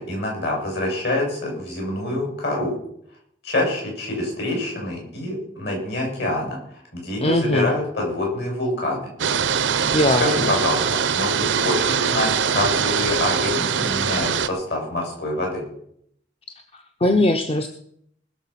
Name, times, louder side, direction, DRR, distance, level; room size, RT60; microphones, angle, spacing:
voice 1, 0.0-2.8 3.4-6.6 6.9-9.1 10.2-15.7, left 1 dB, 60° left, -1 dB, 7.1 m, -26 dB
voice 2, 7.2-7.7 9.9-10.2 16.7-17.7, left 1 dB, 30° left, 6 dB, 0.8 m, -20 dB
sound 1, 9.2-14.5, right 7 dB, 80° right, 0.7 m, -22 dB
20.0 x 7.0 x 5.8 m, 0.69 s
head